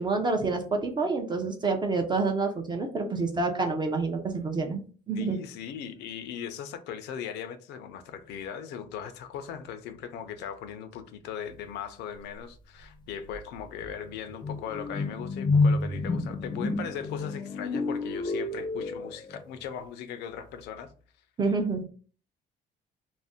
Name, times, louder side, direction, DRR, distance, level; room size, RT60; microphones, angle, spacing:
voice 1, 0.0-4.8 5.1-5.4 21.4-21.8, right 3 dB, 25° right, 0.5 m, -28 dB
voice 2, 5.1-20.9, left 8 dB, 85° left, 0.5 m, -39 dB
sound 1, 12.8-12.9 13.3-19.4, left 3 dB, 25° left, 0.5 m, -29 dB
2.5 x 2.0 x 3.5 m
cardioid pair, 110°, 17 cm